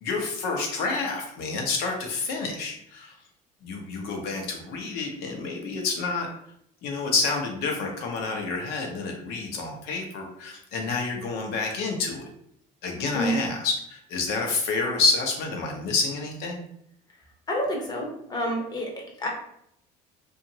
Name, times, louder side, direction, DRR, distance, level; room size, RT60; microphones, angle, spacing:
voice 1, 0.0-3.1 3.6-6.3 6.8-12.3 12.8-16.6, left 3 dB, 75° left, 2 dB, 0.8 m, -28 dB
voice 2, 17.5-19.3, equal, 25° left, 0 dB, 0.7 m, -29 dB
2.9 x 2.5 x 2.7 m, 0.72 s
cardioid pair, 150°, 17 cm